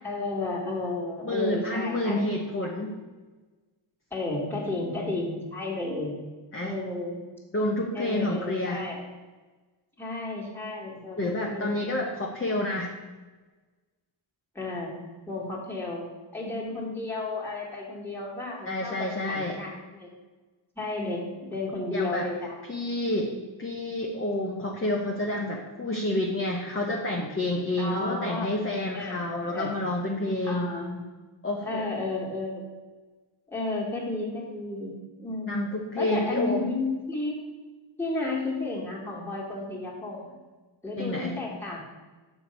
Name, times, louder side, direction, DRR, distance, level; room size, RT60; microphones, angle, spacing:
voice 1, 0.0-2.2 4.1-6.1 6.6-7.2 7.9-9.0 10.0-11.8 14.6-15.0 15.3-16.0 16.3-20.1 20.8-22.6 23.0-23.4 27.8-28.5 28.9-29.8 30.4-31.0 31.6-32.7 33.5-35.7 36.0-37.4 38.0-40.3 40.8-41.8, left 2 dB, 5° left, -4 dB, 2.0 m, -33 dB
voice 2, 1.2-3.0 6.5-6.8 7.5-8.9 11.2-12.9 18.6-19.6 21.9-22.3 22.7-23.3 23.6-30.7 31.4-31.8 35.5-36.7 41.0-41.4, left 1 dB, 25° left, -1 dB, 0.9 m, -29 dB
7.1 x 4.6 x 5.6 m, 1.3 s
wide cardioid pair, 95°, 47 cm